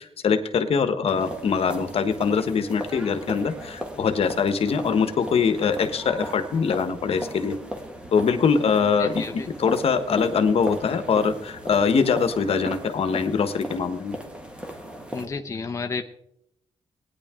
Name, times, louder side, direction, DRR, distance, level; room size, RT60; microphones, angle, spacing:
voice 1, 0.0-7.6 8.1-14.2, left 6 dB, 60° left, 9 dB, 1.2 m, -23 dB
sound 1, 1.1-15.3, equal, 10° right, 1.7 m, -37 dB
voice 2, 9.0-9.5 15.1-16.1, left 4 dB, 25° left, 5 dB, 0.7 m, -31 dB
19.0 x 10.0 x 3.7 m, 0.78 s
wide cardioid pair, 155°, 11 cm